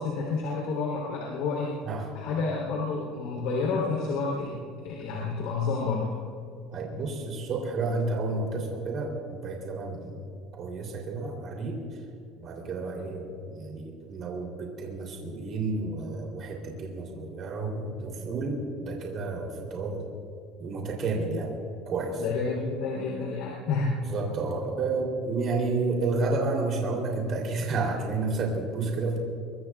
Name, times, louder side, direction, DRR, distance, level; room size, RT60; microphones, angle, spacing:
voice 1, 0.0-1.7 2.1-4.5 4.8-6.1 22.2-22.5 22.8-24.0, left 4 dB, 65° left, -2 dB, 3.6 m, -29 dB
voice 2, 6.7-10.2 10.6-11.8 12.4-20.0 20.6-21.6 21.9-22.2 24.1-29.2, right 3 dB, 35° right, 0 dB, 3.4 m, -31 dB
23.5 x 23.0 x 2.5 m, 2.5 s
cardioid pair, 170°, 0 cm